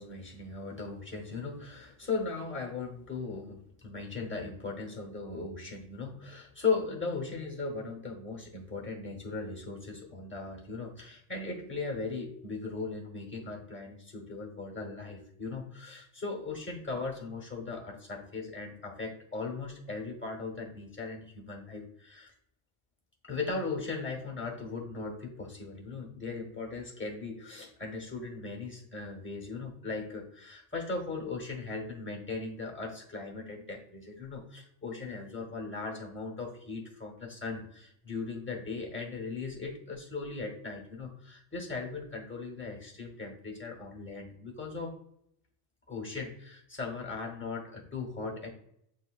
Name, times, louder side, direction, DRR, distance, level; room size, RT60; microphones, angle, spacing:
voice 1, 0.0-22.3 23.2-45.0 45.9-48.5, left 4 dB, 10° left, 1 dB, 0.7 m, -38 dB
7.3 x 2.7 x 2.3 m, 0.73 s
omnidirectional pair, 1.3 m